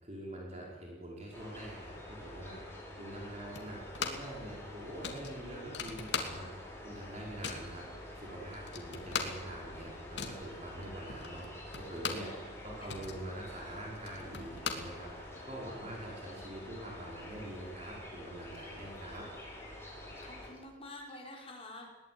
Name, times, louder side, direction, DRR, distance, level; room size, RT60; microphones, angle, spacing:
voice 1, 0.0-6.5 6.8-7.8 8.1-11.5 11.7-15.1 15.4-19.3, right 1 dB, 35° right, -3 dB, 5.1 m, -45 dB
sound 1, 1.3-20.5, left 1 dB, 15° left, 6.5 m, -48 dB
sound 2, 3.5-4.4 4.6-4.7 5.0-6.7 7.0-7.7 8.2-8.3 8.5-12.4 12.7-15.5, left 5 dB, 70° left, 3.0 m, -40 dB
voice 2, 12.1-12.5 12.8-13.0 20.2-21.9, left 2 dB, 30° left, -1 dB, 5.5 m, -49 dB
21.5 x 18.5 x 9.6 m, 1.2 s
head